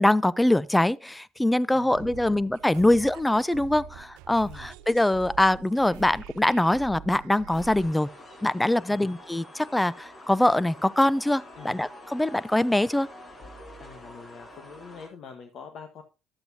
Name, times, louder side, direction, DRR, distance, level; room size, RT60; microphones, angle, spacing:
voice 1, 0.0-8.1 8.4-13.1, left 1 dB, 10° left, 0.5 m, -23 dB
voice 2, 1.7-2.4 2.7-2.9 4.4-4.7 8.9-9.1 11.6-11.8 13.8-16.0, left 6 dB, 60° left, 1.3 m, -46 dB
sound 1, 1.9-7.9, right 10 dB, 80° right, 0.6 m, -45 dB
sound 2, 7.5-15.1, left 1 dB, 35° left, 3.2 m, -47 dB
11.5 x 7.9 x 2.8 m
supercardioid pair, 65°, 0 cm